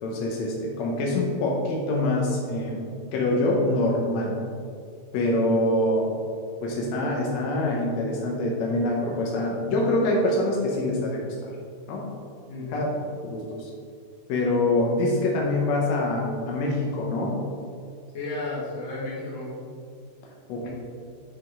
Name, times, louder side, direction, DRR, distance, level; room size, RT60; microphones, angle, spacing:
voice 1, 0.0-4.4 5.1-6.1 6.6-11.5 11.9-12.1 12.7-12.9 13.2-13.7 14.3-17.3 20.5-20.7, left 1 dB, 80° left, -2 dB, 1.6 m, -25 dB
voice 2, 12.5-12.9 18.1-19.5 20.6-20.7, left 2 dB, 45° left, -7 dB, 2.7 m, -33 dB
10.0 x 5.4 x 3.6 m, 2.2 s
omnidirectional pair, 4.5 m